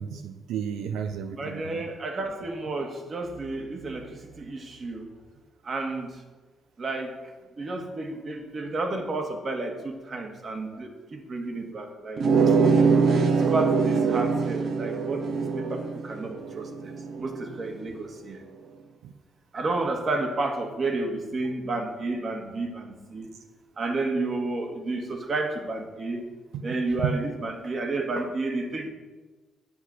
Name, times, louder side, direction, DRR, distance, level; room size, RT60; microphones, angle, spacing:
voice 1, 0.0-1.8 19.0-19.1 27.0-27.1, right 8 dB, 90° right, 7 dB, 0.6 m, -32 dB
voice 2, 1.3-5.1 5.6-6.1 6.8-7.1 7.6-12.2 13.3-18.4 19.5-23.3 23.8-26.3 26.6-28.9, right 2 dB, 45° right, 4 dB, 1.7 m, -31 dB
sound 1, 12.2-17.5, right 5 dB, 60° right, 0.9 m, -23 dB
8.3 x 7.9 x 6.2 m, 1.3 s
cardioid pair, 90°, 0 cm